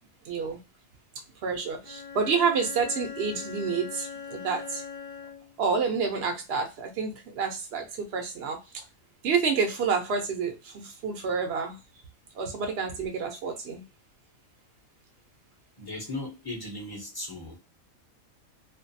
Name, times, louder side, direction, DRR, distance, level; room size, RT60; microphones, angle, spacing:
voice 1, 0.2-0.6 1.4-4.8 5.6-8.6 9.2-11.8 12.3-13.8, right 5 dB, 60° right, 3 dB, 0.7 m, -29 dB
Bowed string instrument, 1.8-5.6, left 6 dB, 80° left, 0.4 m, -41 dB
voice 2, 15.8-17.6, left 2 dB, 25° left, -1 dB, 0.6 m, -37 dB
2.5 x 2.3 x 2.6 m, 0.25 s
omnidirectional pair, 1.5 m